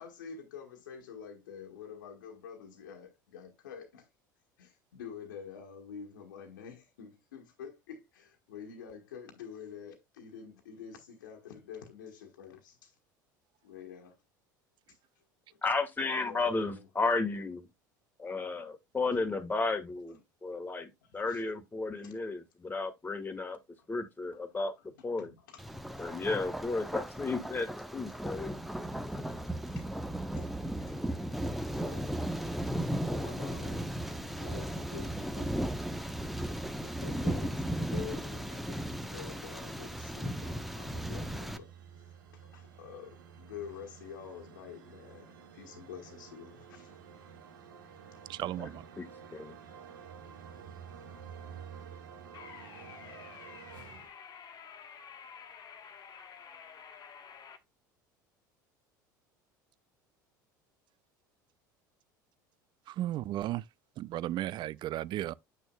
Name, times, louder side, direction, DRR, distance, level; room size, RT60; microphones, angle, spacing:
voice 1, 0.0-4.1 4.6-13.0 13.6-14.2 14.9-15.0 15.5-15.6 16.0-16.9 18.2-18.3 21.0-21.5 22.0-22.2 24.3-24.4 24.8-25.7 28.1-47.0, left 7 dB, 80° left, 1.4 m, -48 dB
voice 2, 15.6-17.7 18.2-23.6 23.9-24.7 25.0-25.3 26.0-28.5 48.6-48.7 49.0-49.5, left 3 dB, 15° left, 1.7 m, -33 dB
Thunder, 25.6-41.6, right 1 dB, ahead, 1.0 m, -36 dB
sound 1, 39.7-54.1, right 7 dB, 80° right, 1.5 m, -51 dB
voice 3, 48.3-48.8 62.9-63.6 64.0-65.3, right 14 dB, 45° right, 0.4 m, -34 dB
sound 2, 52.3-57.6, left 7 dB, 40° left, 1.5 m, -50 dB
8.9 x 6.2 x 2.3 m
hypercardioid pair, 75°, 10 cm